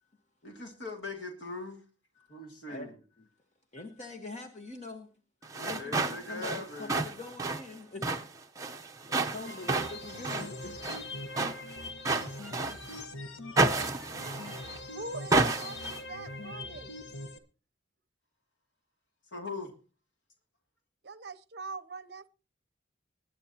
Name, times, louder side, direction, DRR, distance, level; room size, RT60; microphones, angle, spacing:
voice 1, 0.4-1.8 2.3-2.9 5.5-6.9 19.3-19.7, left 3 dB, 70° left, 2.5 m, -40 dB
voice 2, 2.1-2.9 3.2-3.3 3.7-5.1 5.4-8.2 9.0-11.2, left 2 dB, 35° left, 1.2 m, -44 dB
sound 1, 5.4-13.0 13.6-14.8 15.3-16.0, right 3 dB, 15° right, 0.9 m, -31 dB
sound 2, 9.4-17.4, left 2 dB, 90° left, 1.3 m, -42 dB
voice 3, 14.9-16.9 21.0-22.3, right 3 dB, 55° right, 0.7 m, -43 dB
20.5 x 10.5 x 2.9 m
head